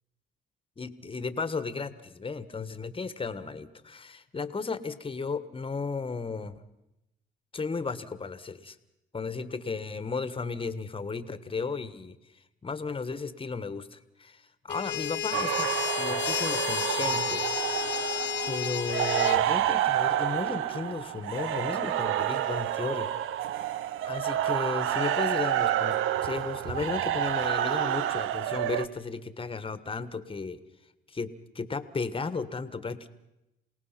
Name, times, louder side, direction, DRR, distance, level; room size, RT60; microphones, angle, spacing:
voice 1, 0.8-6.6 7.5-8.8 9.1-12.2 12.6-15.7 16.0-17.5 18.5-23.1 24.1-30.6 31.1-33.1, left 4 dB, 25° left, 13 dB, 1.5 m, -34 dB
sound 1, 14.7-19.4, left 10 dB, 60° left, 1.0 m, -32 dB
sound 2, 15.3-28.9, right 12 dB, 85° right, 0.7 m, -29 dB
28.0 x 18.5 x 5.9 m, 0.91 s
cardioid pair, 90°, 20 cm